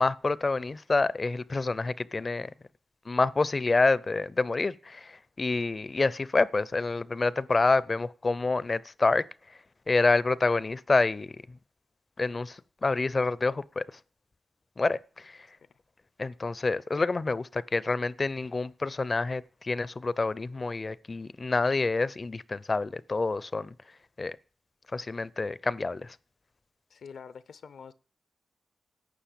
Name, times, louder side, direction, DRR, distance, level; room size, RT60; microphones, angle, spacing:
voice 1, 0.0-2.5 3.1-9.6 9.9-11.4 12.2-13.8 14.8-15.5 16.2-23.7 24.2-24.4 24.9-26.2, left 3 dB, 30° left, 0.5 m, -27 dB
voice 2, 26.9-27.9, left 6 dB, 75° left, 0.7 m, -47 dB
11.5 x 7.6 x 8.6 m
wide cardioid pair, 160°, 0 cm